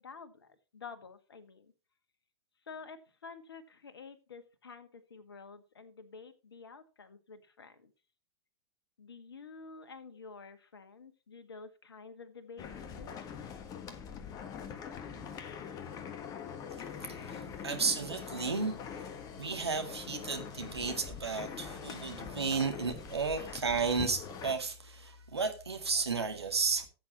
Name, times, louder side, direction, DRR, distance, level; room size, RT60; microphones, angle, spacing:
voice 1, 0.0-1.7 2.7-7.9 9.0-12.7 13.0-13.2, left 5 dB, 65° left, 1.8 m, -50 dB
sound 1, 12.6-24.5, left 7 dB, 25° left, 1.4 m, -43 dB
voice 2, 17.0-26.9, right 4 dB, 75° right, 2.1 m, -33 dB
15.5 x 8.1 x 3.0 m
figure-of-eight pair, 100°, 14 cm